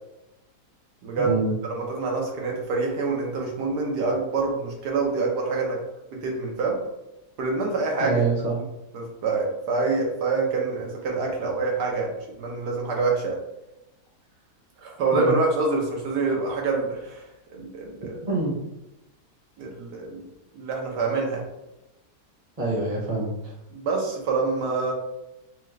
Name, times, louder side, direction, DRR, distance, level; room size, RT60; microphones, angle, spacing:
voice 1, 1.2-1.5 8.0-8.5 15.1-15.3 18.2-18.5 22.6-23.5, right 3 dB, 25° right, -4 dB, 1.1 m, -25 dB
voice 2, 1.7-5.8 6.2-6.8 7.4-8.2 8.9-13.3 14.8-17.2 17.5-18.2 19.6-20.3 20.5-21.4 23.7-24.9, right 3 dB, 80° right, 0 dB, 1.5 m, -26 dB
4.9 x 2.3 x 3.2 m, 0.93 s
omnidirectional pair, 1.7 m